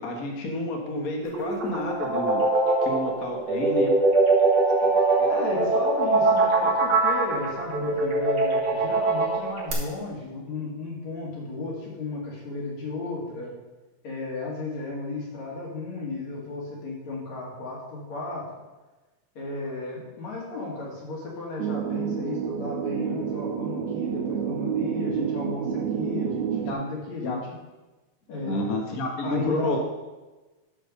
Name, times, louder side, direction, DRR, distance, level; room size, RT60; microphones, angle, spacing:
voice 1, 0.0-2.4 2.8-3.9 4.8-5.3 26.6-26.8 27.2-27.4 28.4-29.8, left 1 dB, 45° left, 0 dB, 1.1 m, -30 dB
sound 1, 1.2-9.7, right 3 dB, 40° right, 1.9 m, -22 dB
voice 2, 5.3-13.5 14.0-18.5 19.4-27.4 28.3-28.6 29.2-29.8, left 2 dB, 65° left, -4 dB, 3.1 m, -34 dB
sound 2, 21.6-26.7, right 8 dB, 85° right, 2.3 m, -29 dB
10.0 x 4.5 x 6.5 m, 1.2 s
omnidirectional pair, 3.4 m